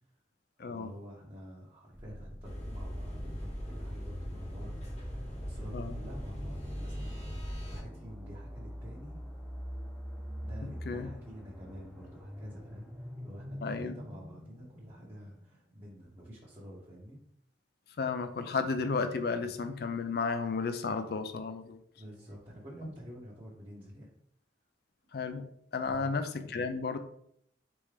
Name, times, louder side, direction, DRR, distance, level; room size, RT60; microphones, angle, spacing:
voice 1, 0.6-9.2 10.4-17.2 21.9-24.1 25.8-26.2, equal, 25° right, -6 dB, 0.9 m, -49 dB
sound 1, 1.9-15.7, equal, 5° left, 0.7 m, -45 dB
sound 2, 2.4-7.8, equal, 35° left, 1.0 m, -40 dB
voice 2, 13.6-14.0 18.0-21.8 25.1-25.5 25.7-27.0, left 4 dB, 55° left, 9 dB, 0.4 m, -33 dB
4.2 x 3.5 x 3.3 m, 0.69 s
head